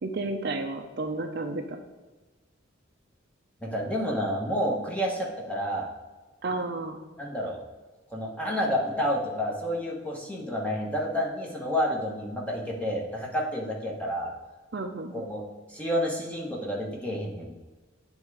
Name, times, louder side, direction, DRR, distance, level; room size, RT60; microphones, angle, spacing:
voice 1, 0.0-1.6 6.4-7.0 14.7-15.1, right 2 dB, 55° right, 5 dB, 0.6 m, -31 dB
voice 2, 3.6-5.9 7.2-7.6 8.1-14.3 15.1-15.4 15.7-17.5, equal, 5° left, -2 dB, 1.2 m, -29 dB
9.0 x 3.6 x 4.8 m, 1.2 s
head